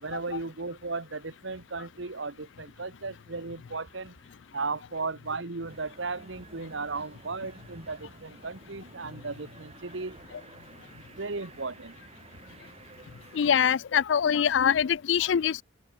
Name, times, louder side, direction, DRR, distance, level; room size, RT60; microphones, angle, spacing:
voice 1, 0.0-4.1 4.5-10.2 10.9-11.9, right 3 dB, 65° right, 1.4 m, -36 dB
sound 1, 5.7-13.7, right 2 dB, 30° right, 1.8 m, -52 dB
voice 2, 13.3-15.6, left 8 dB, 65° left, 0.4 m, -24 dB
open air
head